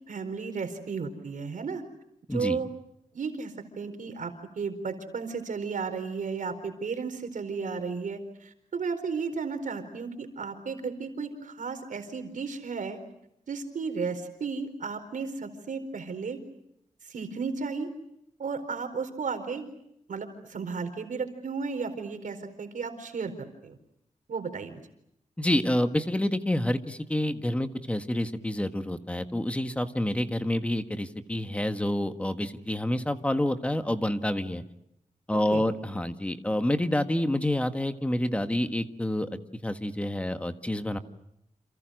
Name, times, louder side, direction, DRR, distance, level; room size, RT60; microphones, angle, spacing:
voice 1, 0.1-1.8 2.3-2.7 3.1-13.0 13.5-16.4 17.1-17.9 18.4-19.7 20.1-23.8 24.3-24.8 35.3-35.6, right 5 dB, 75° right, 7 dB, 4.4 m, -34 dB
voice 2, 25.4-34.6 35.3-39.3 39.6-41.0, left 1 dB, 10° left, 8 dB, 1.5 m, -28 dB
30.0 x 28.0 x 6.5 m, 0.78 s
wide cardioid pair, 170°, 13 cm